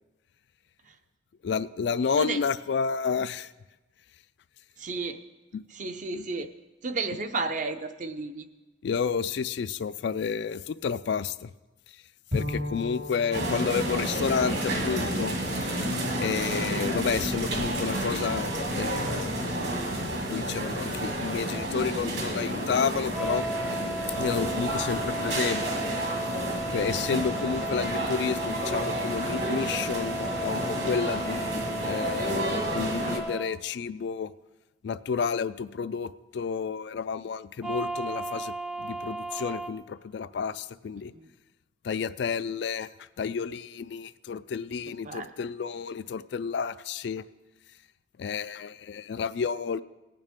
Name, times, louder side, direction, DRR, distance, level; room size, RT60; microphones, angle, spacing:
voice 1, 1.4-3.5 5.5-5.6 6.1-6.3 8.8-11.5 12.3-15.7 16.2-19.5 20.3-23.5 24.2-25.8 26.7-34.3 34.8-41.1 41.8-42.9 43.2-47.2 48.2-49.8, left 6 dB, 65° left, 14 dB, 0.3 m, -31 dB
voice 2, 4.8-5.2 5.8-6.5 6.8-8.4 41.1-41.3 45.0-45.3, right 3 dB, 45° right, 8 dB, 0.6 m, -32 dB
Bowed string instrument, 12.3-16.0, left 2 dB, 80° right, 4.2 m, -37 dB
sound 1, 13.3-33.2, right 1 dB, 60° right, 1.9 m, -30 dB
sound 2, 23.1-33.5 37.6-39.7, right 1 dB, 5° right, 0.5 m, -35 dB
18.0 x 8.9 x 3.6 m, 1.1 s
head